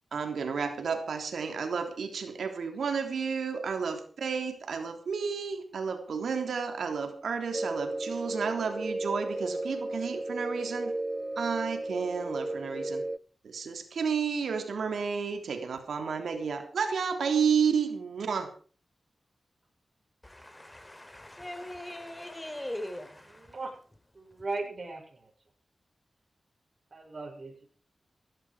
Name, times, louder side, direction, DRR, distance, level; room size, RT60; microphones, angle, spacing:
voice 1, 0.1-10.9 11.4-13.0 13.4-18.5, right 6 dB, 85° right, 6 dB, 3.3 m, -31 dB
sound 1, 7.5-13.2, right 2 dB, 25° right, 0.7 m, -34 dB
voice 2, 20.2-23.5, left 1 dB, 15° left, 8 dB, 4.5 m, -41 dB
voice 3, 23.3-23.8 24.1-25.3 26.9-27.7, right 3 dB, 55° right, 1 dB, 7.3 m, -38 dB
17.0 x 15.5 x 4.9 m, 0.41 s
cardioid pair, 50°, 0 cm